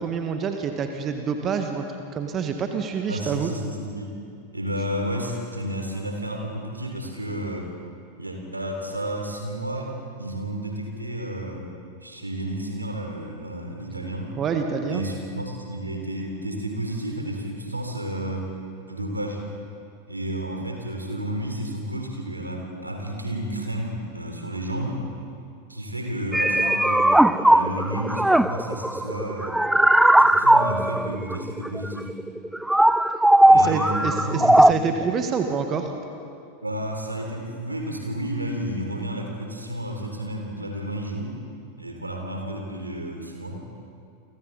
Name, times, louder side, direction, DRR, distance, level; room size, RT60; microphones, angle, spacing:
voice 1, 0.0-1.8 2.1-3.5 14.4-15.0 33.5-35.9, right 6 dB, 30° right, 5 dB, 1.7 m, -27 dB
voice 2, 3.1-4.2 4.5-7.7 8.2-9.9 10.2-11.7 12.0-14.3 14.9-18.6 18.9-19.4 20.1-25.0 25.7-29.6 30.2-32.2 33.4-34.6 36.6-41.4 41.8-43.6, right 1 dB, 85° right, 2 dB, 3.5 m, -31 dB
sound 1, 26.3-34.7, right 1 dB, 5° right, 0.4 m, -18 dB
30.0 x 25.0 x 4.2 m, 2.5 s
figure-of-eight pair, 90°, 0 cm